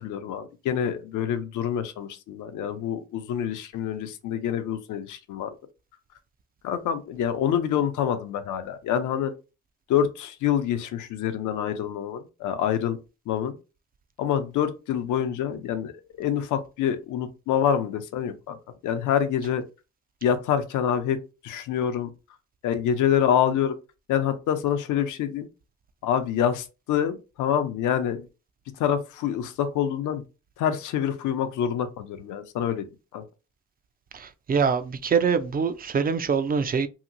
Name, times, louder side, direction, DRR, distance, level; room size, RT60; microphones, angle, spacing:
voice 1, 0.0-5.5 6.6-9.3 9.9-13.0 13.3-13.5 14.2-15.9 16.2-18.6 18.8-19.6 20.2-21.2 21.4-22.1 22.6-23.7 24.1-25.5 26.0-28.3 28.8-30.2 30.6-32.9 33.1-33.2, left 9 dB, 80° left, 0.6 m, -26 dB
voice 2, 34.1-36.9, right 6 dB, 30° right, 0.4 m, -24 dB
2.9 x 2.8 x 2.5 m
cardioid pair, 90°, 30 cm